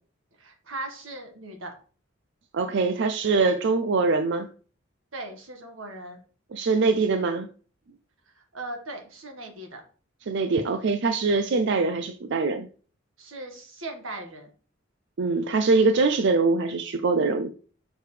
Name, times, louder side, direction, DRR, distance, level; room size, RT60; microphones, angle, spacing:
voice 1, 0.4-1.7 5.1-6.2 8.3-9.8 13.2-14.5, right 2 dB, 90° right, 4 dB, 1.5 m, -38 dB
voice 2, 2.5-4.5 6.5-7.5 10.3-12.7 15.2-17.5, right 3 dB, 65° right, 8 dB, 0.5 m, -23 dB
6.4 x 4.7 x 3.2 m, 0.40 s
head